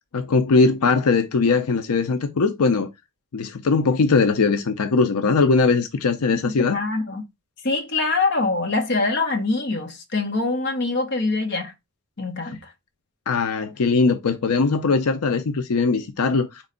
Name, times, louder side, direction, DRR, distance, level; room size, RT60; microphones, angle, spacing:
voice 1, 0.1-2.9 3.3-6.8 13.3-16.6, left 4 dB, 85° left, 0.5 m, -20 dB
voice 2, 6.3-7.2 7.6-11.7 12.2-12.7, left 3 dB, 50° left, 0.9 m, -24 dB
4.2 x 3.2 x 3.7 m
head